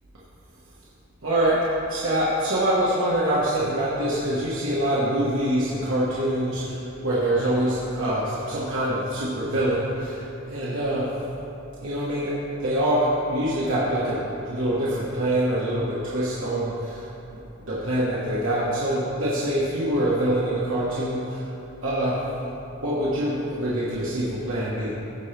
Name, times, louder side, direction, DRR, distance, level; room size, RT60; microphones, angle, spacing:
voice 1, 1.2-11.1 11.8-17.1 17.6-21.5 21.8-22.2 22.8-24.9, right 1 dB, 65° right, -8 dB, 1.3 m, -25 dB
16.0 x 5.3 x 3.4 m, 2.8 s
head